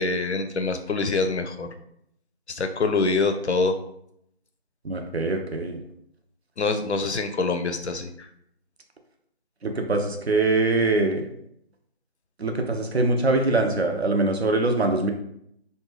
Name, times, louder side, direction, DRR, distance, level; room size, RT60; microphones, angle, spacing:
voice 1, 0.0-1.7 2.5-3.8 6.6-8.3, left 3 dB, 85° left, 7 dB, 0.5 m, -25 dB
voice 2, 4.8-5.8 9.6-11.3 12.4-15.1, right 2 dB, 70° right, 4 dB, 0.6 m, -23 dB
2.7 x 2.2 x 3.1 m, 0.73 s
figure-of-eight pair, 180°, 33 cm